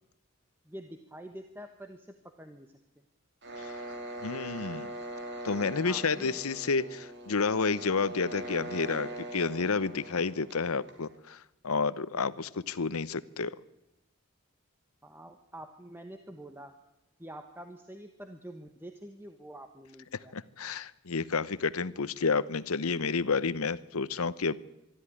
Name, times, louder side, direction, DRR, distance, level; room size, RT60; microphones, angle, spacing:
voice 1, 0.6-2.7 5.8-6.4 15.0-16.7 17.2-20.3, right 1 dB, 10° right, 6 dB, 1.1 m, -46 dB
sound 1, 3.4-11.2, right 1 dB, 50° right, 3.4 m, -42 dB
voice 2, 4.2-4.9 5.4-13.6 20.3-24.6, left 4 dB, 85° left, 17 dB, 0.9 m, -30 dB
23.5 x 13.0 x 9.9 m, 0.89 s
head